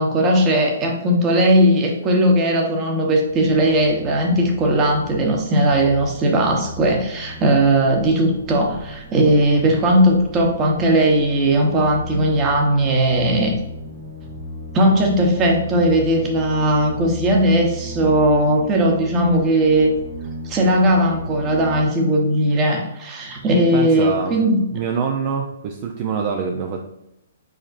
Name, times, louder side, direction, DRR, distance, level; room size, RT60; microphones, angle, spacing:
voice 1, 0.0-13.5 14.7-19.9 20.4-24.6, right 1 dB, 20° right, 1 dB, 1.0 m, -18 dB
sound 1, 3.3-21.8, left 1 dB, 65° right, 1.4 m, -35 dB
voice 2, 23.7-24.4 24.7-26.8, right 6 dB, 40° right, 3 dB, 0.5 m, -25 dB
5.0 x 4.2 x 2.5 m, 0.86 s
hypercardioid pair, 150°, 0 cm